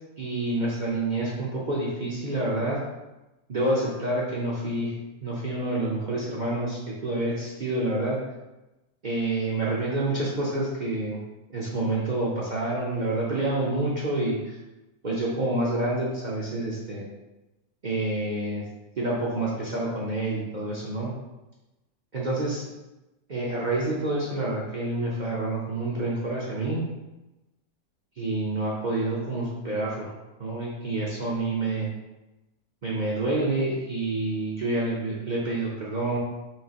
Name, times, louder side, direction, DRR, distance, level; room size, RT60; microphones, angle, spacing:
voice 1, 0.2-2.8 3.5-4.9 5.2-8.2 9.0-11.2 11.5-14.6 15.0-17.0 17.8-18.6 19.0-21.1 22.1-22.6 23.3-26.8 28.2-30.1 30.4-31.9 32.8-36.2, right 2 dB, 45° right, -6 dB, 0.6 m, -28 dB
4.9 x 2.8 x 2.8 m, 1.0 s
omnidirectional pair, 1.6 m